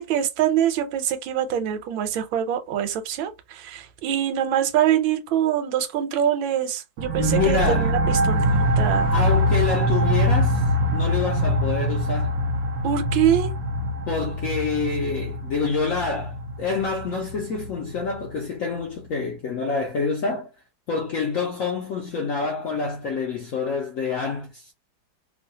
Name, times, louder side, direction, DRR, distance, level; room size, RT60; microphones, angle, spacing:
voice 1, 0.0-9.2 12.8-13.5, right 10 dB, 90° right, 1.4 m, -24 dB
sound 1, 7.0-18.3, equal, 70° right, 1.0 m, -24 dB
voice 2, 7.2-7.9 9.1-10.6 10.9-12.4 14.1-20.5 20.9-24.7, left 4 dB, 75° left, 0.7 m, -27 dB
3.1 x 2.2 x 2.7 m
omnidirectional pair, 2.1 m